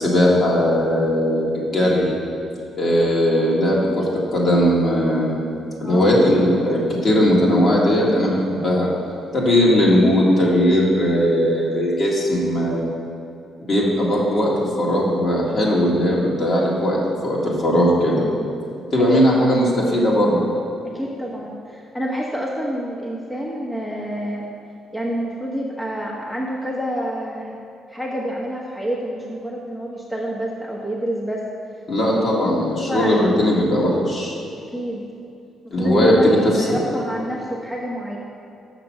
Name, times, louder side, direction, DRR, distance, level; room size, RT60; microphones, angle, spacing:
voice 1, 0.0-2.1 2.8-4.1 4.3-5.4 5.8-8.9 9.3-12.9 13.7-17.0 17.2-18.3 18.9-19.7 19.9-20.4 31.9-34.3 35.7-36.8, equal, 45° left, -4 dB, 2.0 m, -18 dB
voice 2, 19.0-19.7 20.8-24.5 24.9-27.5 27.9-31.4 32.1-33.2 34.7-35.0 35.6-38.2, equal, 5° left, -3 dB, 1.0 m, -28 dB
6.6 x 6.0 x 6.0 m, 2.6 s
cardioid pair, 90°, 0 cm